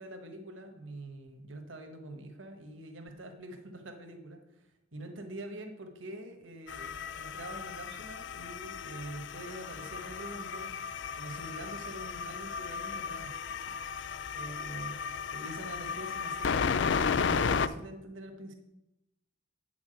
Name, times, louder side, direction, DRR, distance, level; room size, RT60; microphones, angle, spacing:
voice 1, 0.0-4.7 4.9-6.9 7.2-10.7 11.1-13.5 13.9-14.0 14.3-15.0 15.3-18.5, right 1 dB, 75° right, 4 dB, 1.4 m, -45 dB
sound 1, 6.7-17.7, left 6 dB, 60° left, 0.4 m, -34 dB
8.5 x 5.9 x 7.7 m, 0.89 s
head